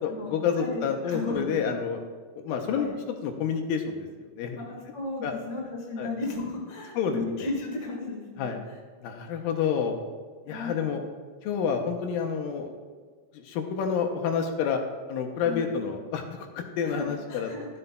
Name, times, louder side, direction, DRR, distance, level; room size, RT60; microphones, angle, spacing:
voice 1, 0.0-2.0 2.4-2.9 3.2-4.6 5.2-5.3 6.0-6.1 7.0-7.5 8.4-8.6 9.0-10.0 10.5-11.0 11.4-12.7 13.3-14.8 15.1-17.5, left 6 dB, 85° left, 3 dB, 2.3 m, -29 dB
voice 2, 0.6-1.7 2.7-2.9 4.5-8.5 10.5-10.9 15.4-15.7 16.8-17.7, left 3 dB, 40° left, -2 dB, 1.0 m, -35 dB
12.5 x 7.9 x 2.2 m, 1.5 s
omnidirectional pair, 4.1 m